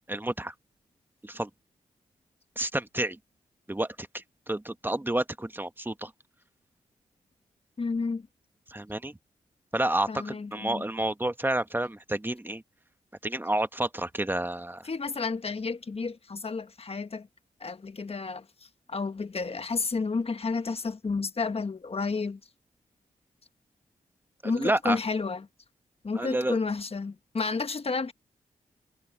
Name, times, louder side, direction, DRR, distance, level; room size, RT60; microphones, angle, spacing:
voice 1, 0.1-0.5 1.2-1.5 2.6-3.2 3.7-6.1 8.7-9.2 9.7-12.6 13.2-14.8 24.5-25.0 26.1-26.6, right 1 dB, 15° right, 1.5 m, -30 dB
voice 2, 7.8-8.3 10.1-10.9 14.8-17.3 17.6-22.4 24.4-25.5 26.0-28.1, left 4 dB, 45° left, 1.4 m, -31 dB
supercardioid pair, 45°, 15 cm